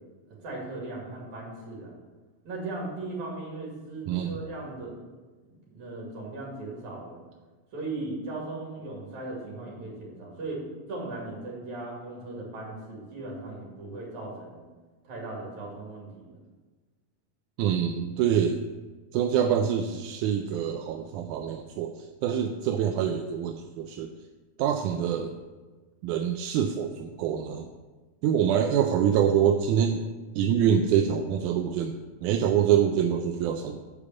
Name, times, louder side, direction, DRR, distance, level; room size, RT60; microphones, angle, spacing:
voice 1, 0.3-2.0 2.5-4.9 5.5-7.2 7.7-10.6 10.9-14.6 15.0-16.4, right 2 dB, 70° right, -3 dB, 3.6 m, -38 dB
voice 2, 4.1-4.4 17.6-18.6 19.1-24.1 24.6-25.3 26.0-27.7 28.2-30.0 30.4-32.0 32.2-33.8, right 9 dB, 90° right, 5 dB, 2.0 m, -25 dB
8.3 x 5.0 x 7.0 m, 1.3 s
omnidirectional pair, 3.5 m